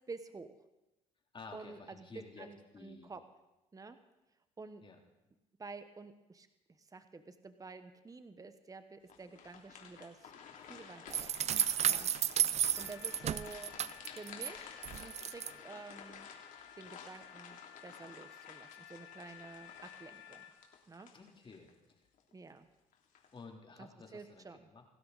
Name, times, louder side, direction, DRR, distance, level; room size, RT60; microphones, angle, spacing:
voice 1, 0.1-0.5 1.5-2.1 2.4-3.2 3.7-4.0 4.6-4.8 5.6-6.5 6.8-10.3 10.7-11.3 11.8-12.1 12.4-13.7 14.1-16.3 16.8-20.4 20.9-21.1 22.3-22.7 23.8-24.7, right 4 dB, 25° right, 10 dB, 1.2 m, -50 dB
voice 2, 1.3-2.5 2.7-3.1 4.8-5.0 21.1-21.7 23.3-24.8, left 4 dB, 35° left, 1 dB, 3.4 m, -52 dB
sound 1, 9.1-21.7 22.2-22.3 22.9-23.4, left 7 dB, 65° left, 3.2 m, -53 dB
sound 2, 11.1-14.5 14.8-15.5, right 10 dB, 50° right, 0.6 m, -32 dB
sound 3, 12.7-20.5, left 10 dB, 85° left, 1.8 m, -55 dB
27.5 x 12.5 x 4.1 m, 0.99 s
supercardioid pair, 70°, 15 cm